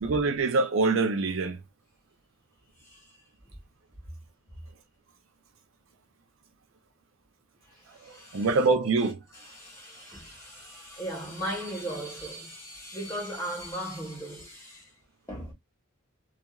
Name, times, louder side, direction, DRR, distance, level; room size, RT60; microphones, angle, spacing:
voice 1, 0.0-1.6 8.3-9.2, right 3 dB, 60° right, 0.4 m, -24 dB
voice 2, 2.8-3.2 7.7-8.7 9.3-14.9 15.3-15.5, equal, 15° left, 1.3 m, -38 dB
2.8 x 2.4 x 2.3 m
head